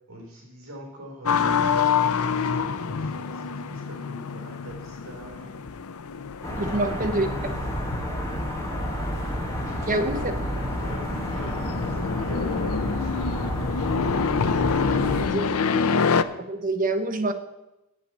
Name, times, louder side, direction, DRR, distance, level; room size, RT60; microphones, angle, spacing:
voice 1, 0.1-1.8 2.2-5.7 6.7-7.1 9.6-10.3 10.7-14.2 14.9-15.1, equal, 65° right, 0 dB, 3.8 m, -43 dB
sound 1, 1.3-16.2, left 5 dB, 80° left, 0.5 m, -27 dB
sound 2, 6.4-15.3, equal, 15° left, 1.7 m, -30 dB
voice 2, 6.6-7.3 9.9-10.3 15.2-15.4 16.4-17.3, right 2 dB, 35° right, 6 dB, 1.0 m, -26 dB
8.4 x 7.4 x 8.5 m, 0.93 s
head